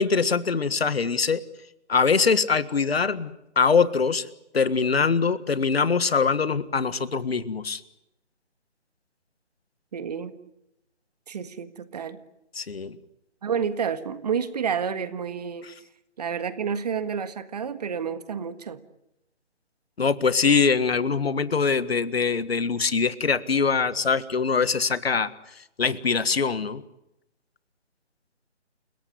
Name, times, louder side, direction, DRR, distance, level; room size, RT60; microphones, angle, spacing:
voice 1, 0.0-1.4 1.9-4.3 4.5-7.8 12.6-13.0 20.0-25.3 25.8-26.8, left 5 dB, 60° left, 16 dB, 1.6 m, -23 dB
voice 2, 9.9-10.4 11.3-12.2 13.4-15.7 16.2-18.8, right 7 dB, 35° right, 12 dB, 1.7 m, -30 dB
30.0 x 17.5 x 9.7 m, 0.87 s
figure-of-eight pair, 155°, 35 cm